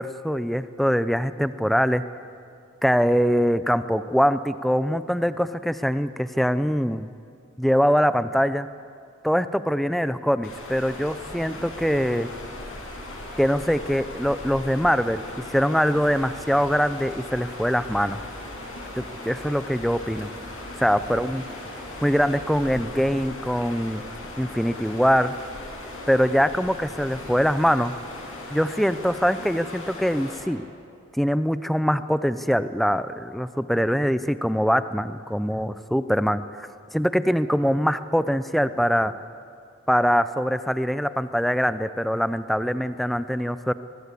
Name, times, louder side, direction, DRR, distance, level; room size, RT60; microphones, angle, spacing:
voice 1, 0.0-2.0 2.8-7.1 7.6-8.7 9.2-12.3 13.4-15.2 15.5-18.2 18.9-20.3 20.8-21.4 22.0-24.0 24.4-25.4 26.1-27.9 28.5-30.6 31.1-39.1 39.9-43.7, equal, ahead, 12 dB, 0.5 m, -23 dB
sound 1, 10.4-30.4, left 2 dB, 90° left, 7.7 m, -38 dB
sound 2, 16.1-22.8, right 1 dB, 35° right, 2.6 m, -47 dB
24.0 x 20.0 x 8.4 m, 2.4 s
head